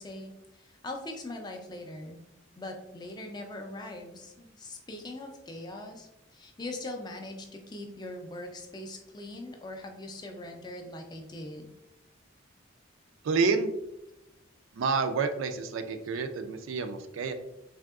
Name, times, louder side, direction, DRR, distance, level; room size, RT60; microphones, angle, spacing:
voice 1, 0.0-2.2 2.6-11.7, left 1 dB, 20° left, 3 dB, 0.3 m, -41 dB
voice 2, 13.2-13.7 14.7-17.3, right 4 dB, 75° right, 7 dB, 0.3 m, -29 dB
3.4 x 2.7 x 2.3 m, 0.89 s
head